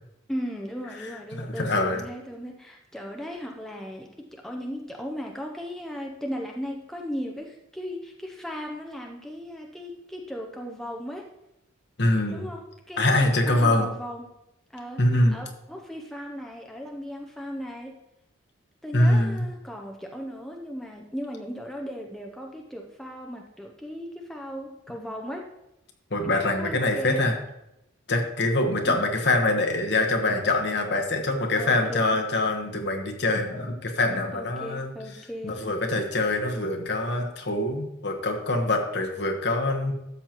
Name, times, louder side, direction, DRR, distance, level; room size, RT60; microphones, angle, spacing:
voice 1, 0.3-11.3 12.3-14.3 14.7-18.0 18.8-25.5 26.2-27.3 28.8-29.1 31.6-32.2 34.3-35.7, equal, ahead, 0 dB, 0.6 m, -37 dB
voice 2, 1.0-2.0 12.0-12.4 13.0-13.9 15.0-15.4 18.9-19.4 26.1-27.3 28.1-34.9 35.4-39.9, left 2 dB, 55° left, 3 dB, 1.2 m, -24 dB
12.5 x 7.3 x 3.0 m, 0.87 s
head